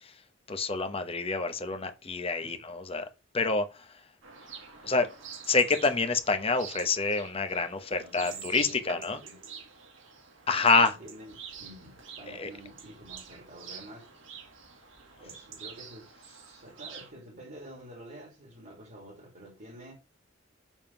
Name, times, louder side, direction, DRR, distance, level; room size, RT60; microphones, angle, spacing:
voice 1, 0.5-3.1 3.3-3.7 4.8-5.1 5.5-9.2 10.5-10.9 12.4-12.5, left 4 dB, 30° left, 0.9 m, -27 dB
sound 1, 4.2-17.1, right 6 dB, 90° right, 2.2 m, -47 dB
voice 2, 7.8-9.5 10.7-14.5 15.2-19.9, right 1 dB, 50° right, 2.7 m, -49 dB
7.2 x 3.6 x 5.8 m
head